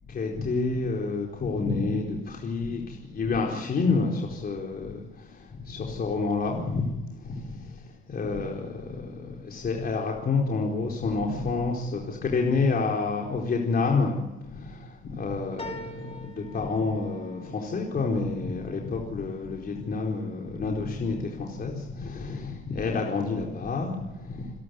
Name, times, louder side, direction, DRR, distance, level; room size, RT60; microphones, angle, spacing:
voice 1, 0.1-14.2 14.5-24.5, left 4 dB, 50° left, 0 dB, 4.3 m, -29 dB
sound 1, 15.6-20.3 20.8-21.5 21.9-22.0, left 1 dB, 30° left, 5.2 m, -45 dB
28.5 x 12.5 x 9.5 m, 0.97 s
cardioid pair, 90°, 20 cm